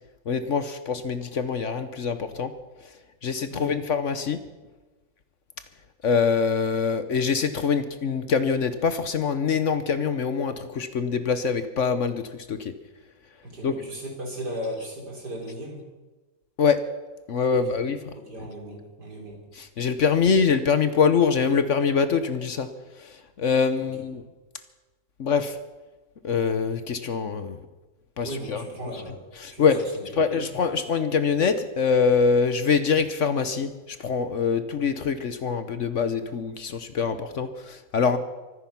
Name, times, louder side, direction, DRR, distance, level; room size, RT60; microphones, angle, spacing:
voice 1, 0.3-2.5 3.2-4.4 6.0-12.7 13.6-13.7 16.6-16.8 17.3-18.1 19.6-22.7 23.0-24.2 25.2-25.6 26.2-27.6 28.2-28.6 29.4-29.8 30.2-38.2, left 5 dB, 55° left, 11 dB, 1.0 m, -24 dB
voice 2, 13.4-15.8 17.5-17.8 18.1-19.4 23.8-24.3 28.2-29.2 29.5-30.5 38.1-38.2, right 1 dB, 65° right, 0 dB, 4.5 m, -37 dB
24.0 x 9.9 x 5.8 m, 1.2 s
omnidirectional pair, 1.9 m